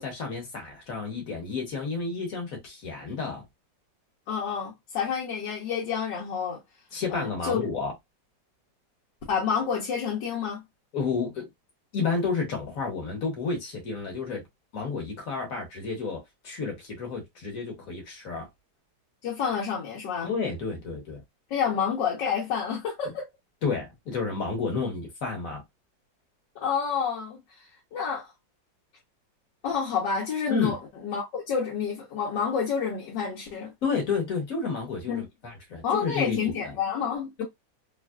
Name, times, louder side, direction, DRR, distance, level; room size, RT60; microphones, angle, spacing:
voice 1, 0.0-3.4 6.9-7.9 10.9-11.5 11.9-14.4 14.7-18.5 20.2-21.2 23.6-25.6 30.5-30.7 33.8-36.7, left 4 dB, 50° left, 1.5 m, -31 dB
voice 2, 4.3-6.6 7.1-7.6 9.3-10.6 19.2-20.3 21.5-23.3 26.5-27.6 27.9-28.3 29.6-33.7 35.1-35.3 35.8-37.4, left 7 dB, 75° left, 1.5 m, -29 dB
3.4 x 2.4 x 2.3 m
omnidirectional pair, 1.9 m